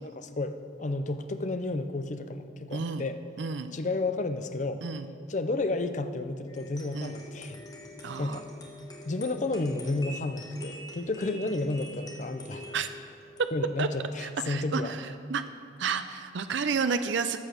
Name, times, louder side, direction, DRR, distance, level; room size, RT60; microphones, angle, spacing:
voice 1, 0.0-3.2 3.7-4.8 5.3-7.7 8.2-8.4 9.0-12.7 13.5-15.0, left 2 dB, 40° left, 9 dB, 0.6 m, -31 dB
voice 2, 2.7-3.1 3.4-3.7 4.8-5.1 6.9-7.2 8.0-8.4 12.7-12.9 13.8-13.9 14.2-15.4 15.8-17.4, right 5 dB, 75° right, 10 dB, 0.5 m, -31 dB
sound 1, 6.5-14.8, left 1 dB, 20° left, 1.4 m, -46 dB
13.5 x 6.1 x 6.5 m, 2.3 s
head